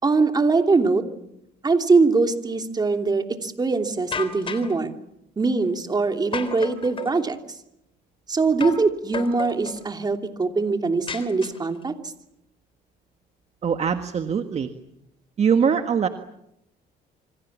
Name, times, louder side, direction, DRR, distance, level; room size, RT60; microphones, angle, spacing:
voice 1, 0.0-1.0 1.6-4.9 5.4-7.4 8.3-11.9, right 4 dB, 25° right, 5 dB, 3.0 m, -22 dB
sound 1, 4.1-4.8 6.3-7.2 8.6-8.9 9.1-9.8 11.1-11.8, left 5 dB, 30° left, 3.7 m, -32 dB
voice 2, 13.6-14.7 15.4-16.1, right 7 dB, 40° right, 7 dB, 1.7 m, -22 dB
27.5 x 25.5 x 7.4 m, 0.81 s
cardioid pair, 110°, 17 cm